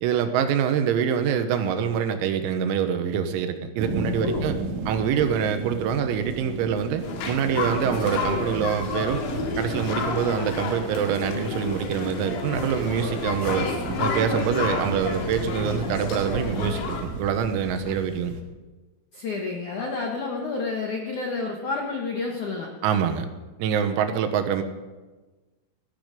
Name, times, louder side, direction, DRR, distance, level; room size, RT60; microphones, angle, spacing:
voice 1, 0.0-4.6 4.9-13.7 14.0-18.3 22.8-23.3 23.6-24.6, right 7 dB, 85° right, 8 dB, 4.0 m, -25 dB
sound 1, 3.8-18.4, right 3 dB, 70° right, 3.8 m, -34 dB
sound 2, 7.0-17.0, left 4 dB, 90° left, 4.9 m, -30 dB
voice 2, 19.1-22.7, left 4 dB, 75° left, 0 dB, 1.8 m, -30 dB
17.0 x 14.5 x 5.2 m, 1.2 s
omnidirectional pair, 6.0 m